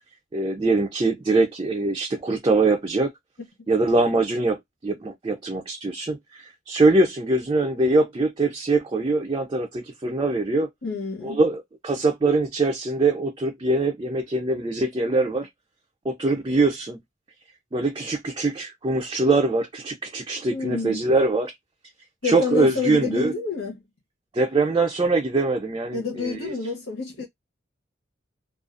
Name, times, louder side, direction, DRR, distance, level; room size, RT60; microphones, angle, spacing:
voice 1, 0.3-3.1 3.7-10.7 11.2-15.5 16.0-17.0 17.7-21.5 22.2-23.3 24.3-26.5, right 3 dB, 25° right, 0.4 m, -23 dB
voice 2, 10.8-11.4 20.5-21.0 22.2-23.8 25.9-27.3, left 4 dB, 85° left, 0.9 m, -29 dB
2.4 x 2.3 x 2.4 m
head